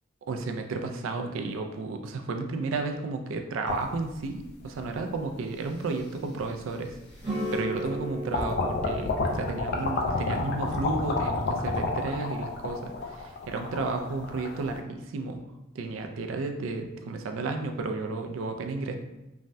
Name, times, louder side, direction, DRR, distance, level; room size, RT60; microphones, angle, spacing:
voice 1, 0.3-6.9 7.5-15.4 15.8-18.9, right 3 dB, 75° right, 5 dB, 0.3 m, -32 dB
sound 1, 3.7-4.8 5.6-5.7 6.9-7.0 7.4-8.0 8.3-14.8, left 3 dB, 55° left, 0.4 m, -30 dB
sound 2, 7.2-12.4, equal, 25° right, 0.7 m, -38 dB
3.2 x 2.1 x 2.6 m, 0.97 s
head